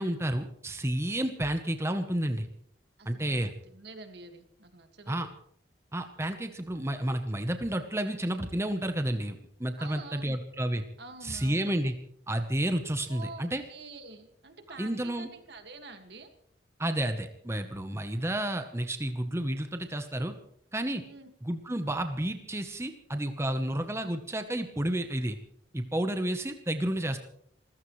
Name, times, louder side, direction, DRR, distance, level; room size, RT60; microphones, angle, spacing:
voice 1, 0.0-2.5 3.0-3.5 5.1-5.3 5.9-10.8 11.2-11.9 12.3-13.6 14.8-15.3 16.8-20.3 20.7-21.0 21.4-25.4 25.7-27.2, right 1 dB, 15° right, 7 dB, 1.0 m, -31 dB
voice 2, 3.0-5.3 9.8-10.4 11.0-11.8 13.1-13.4 13.7-16.3 21.0-21.3, right 3 dB, 65° right, 6 dB, 1.9 m, -47 dB
28.0 x 15.0 x 3.2 m, 0.67 s
head